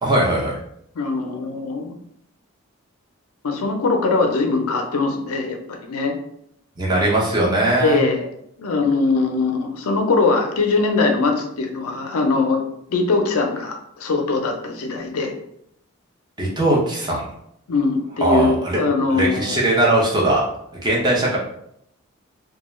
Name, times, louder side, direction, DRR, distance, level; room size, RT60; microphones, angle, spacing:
voice 1, 0.0-0.6 6.8-8.0 16.4-17.3 18.2-18.8 19.1-20.5 20.7-21.4, right 1 dB, 20° right, -4 dB, 0.5 m, -19 dB
voice 2, 1.0-2.0 3.4-6.1 7.8-8.3 8.6-12.6 12.9-15.3 17.7-19.6, left 3 dB, 85° left, 4 dB, 0.5 m, -21 dB
2.3 x 2.2 x 3.0 m, 0.73 s
head